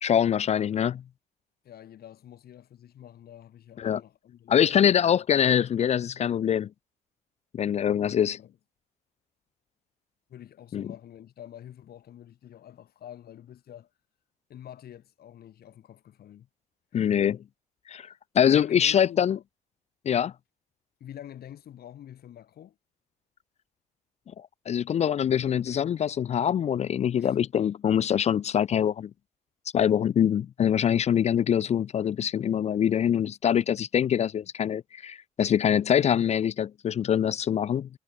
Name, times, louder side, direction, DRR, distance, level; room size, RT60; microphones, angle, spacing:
voice 1, 0.0-1.0 3.8-4.0 4.5-6.7 7.5-8.4 10.7-10.9 16.9-17.4 17.9-19.4 20.1-20.3 24.7-29.1 29.7-37.9, left 9 dB, 40° left, 0.3 m, -24 dB
voice 2, 1.6-5.4 8.4-8.6 10.3-13.9 14.5-16.5 16.9-17.3 18.5-19.4 21.0-22.8 27.2-27.4, left 11 dB, 60° left, 1.5 m, -47 dB
supercardioid pair, 65°, 18 cm